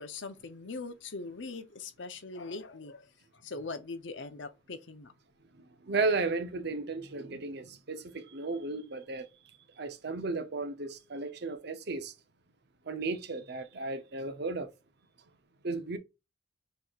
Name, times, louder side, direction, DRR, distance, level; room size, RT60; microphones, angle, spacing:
voice 1, 0.0-5.1, left 3 dB, 75° left, 0.8 m, -41 dB
voice 2, 5.8-9.3 9.8-12.1 12.9-14.7 15.6-16.0, right 3 dB, 60° right, 0.8 m, -34 dB
6.7 x 3.1 x 2.4 m
head